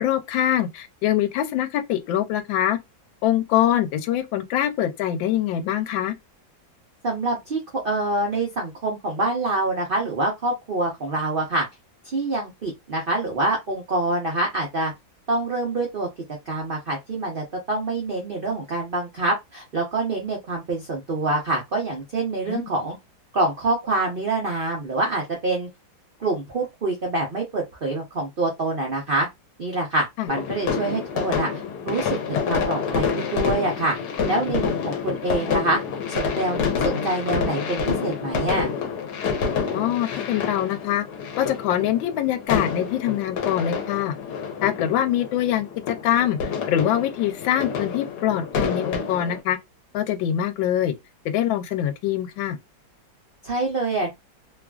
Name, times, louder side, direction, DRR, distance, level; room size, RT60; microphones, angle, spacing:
voice 1, 0.0-2.8 3.2-6.1 22.5-22.7 30.2-30.3 39.7-41.0 41.4-44.2 44.6-46.4 46.7-49.6 49.9-50.9 51.2-52.6, left 11 dB, 85° left, 1.3 m, -24 dB
voice 2, 7.0-11.6 12.0-14.9 15.3-16.1 16.5-23.0 23.3-25.7 26.2-29.3 29.6-31.5 31.8-33.9 34.3-35.8 36.1-38.7 53.4-54.1, right 2 dB, 80° right, 0.4 m, -26 dB
sound 1, 30.3-49.4, left 6 dB, 65° left, 1.2 m, -28 dB
3.0 x 2.4 x 2.3 m
omnidirectional pair, 2.1 m